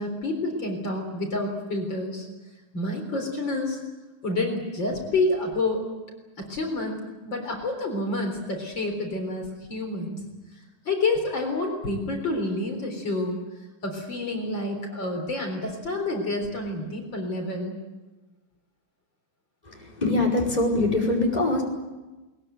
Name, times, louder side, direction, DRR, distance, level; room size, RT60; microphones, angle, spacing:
voice 1, 0.0-2.3 2.7-3.8 4.2-5.9 6.4-10.2 10.9-13.4 13.8-17.8, left 2 dB, 65° left, 3 dB, 4.6 m, -28 dB
voice 2, 19.7-21.6, left 2 dB, 20° left, -2 dB, 5.3 m, -23 dB
22.0 x 21.0 x 9.1 m, 1.2 s
omnidirectional pair, 2.2 m